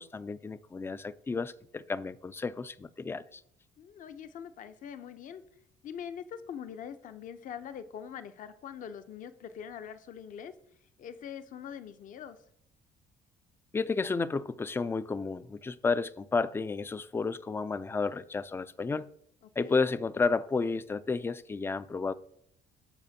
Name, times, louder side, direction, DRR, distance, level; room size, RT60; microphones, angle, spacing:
voice 1, 0.0-3.4 13.7-19.1 19.6-22.1, left 4 dB, 15° left, 0.3 m, -32 dB
voice 2, 3.8-5.4 5.8-10.5 11.0-12.4 19.4-19.8, left 8 dB, 50° left, 0.6 m, -43 dB
14.0 x 5.0 x 2.7 m
cardioid pair, 110°, 17 cm